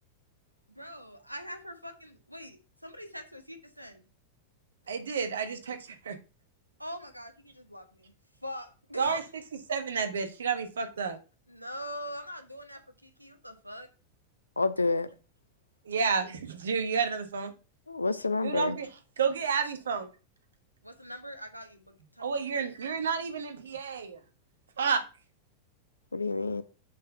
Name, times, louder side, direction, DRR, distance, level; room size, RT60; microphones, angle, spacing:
voice 1, 0.7-4.0 6.8-8.1 8.4-9.2 11.5-13.9 20.8-22.7, equal, 90° right, 1.1 m, -43 dB
voice 2, 4.9-5.8 6.0-6.1 9.0-9.2 9.7-11.2 15.9-17.5 18.4-18.9 19.2-20.1 22.2-24.2 24.8-25.0, right 6 dB, 65° right, 1.2 m, -30 dB
voice 3, 14.6-15.1 17.9-18.8 26.1-26.6, left 3 dB, 80° left, 0.6 m, -28 dB
7.3 x 4.5 x 5.4 m
figure-of-eight pair, 90°, 0 cm